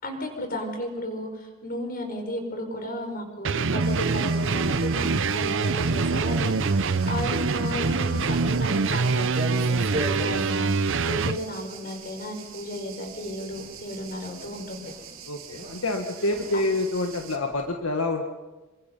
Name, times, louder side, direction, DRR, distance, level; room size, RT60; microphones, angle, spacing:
voice 1, 0.0-14.9, left 1 dB, 45° left, 4 dB, 5.2 m, -34 dB
sound 1, 3.4-11.4, right 4 dB, 60° right, 0.7 m, -24 dB
sound 2, 3.8-17.4, right 8 dB, 75° right, 4.1 m, -45 dB
Walk footsteps, 8.2-17.7, right 1 dB, 40° right, 3.5 m, -40 dB
voice 2, 15.3-18.3, left 2 dB, 75° left, 4 dB, 1.6 m, -27 dB
28.5 x 24.0 x 5.5 m, 1.2 s
head